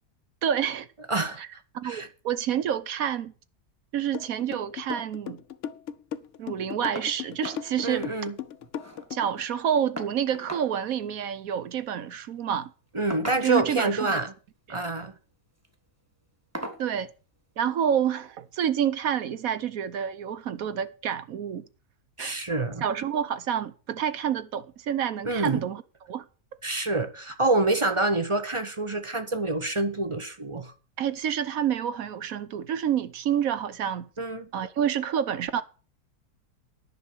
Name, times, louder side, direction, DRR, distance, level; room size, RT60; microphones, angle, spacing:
voice 1, 0.4-0.9 1.4-1.5 1.7-3.3 3.9-5.4 6.4-8.1 9.1-12.7 13.4-14.2 14.7-14.8 16.8-17.1 17.6-21.6 22.2-22.4 22.8-25.8 26.1-26.3 31.0-34.1 34.5-35.6, right 9 dB, 65° right, 1.1 m, -28 dB
voice 2, 1.1-1.4 1.8-2.1 7.8-8.3 12.9-14.3 14.7-15.1 22.2-22.8 25.2-25.6 26.6-30.7 34.2-34.5, right 2 dB, 25° right, 0.7 m, -27 dB
sound 1, 4.1-9.4, left 9 dB, 60° left, 0.9 m, -36 dB
sound 2, 6.9-7.2 7.4-7.7 8.0-8.1 8.4-9.1 10.0-10.7 11.9-12.1 13.1-13.8 14.8-15.1 15.6-15.8 16.5-16.9 18.1-18.2 18.7-18.8, right 1 dB, 10° right, 1.6 m, -39 dB
10.5 x 5.9 x 8.3 m
omnidirectional pair, 1.7 m